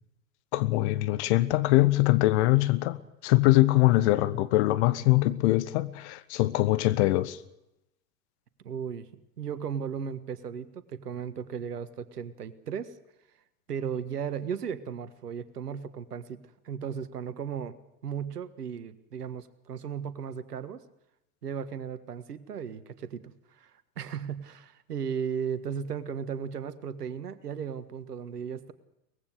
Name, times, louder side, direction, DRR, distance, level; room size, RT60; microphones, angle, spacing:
voice 1, 0.5-7.4, left 18 dB, 45° left, 1.3 m, -23 dB
voice 2, 8.6-9.1 9.4-12.9 13.7-16.4 16.6-17.8 18.0-20.8 21.4-23.7 24.0-28.7, right 7 dB, 70° right, 1.7 m, -36 dB
23.5 x 20.0 x 6.6 m
figure-of-eight pair, 90°, 48 cm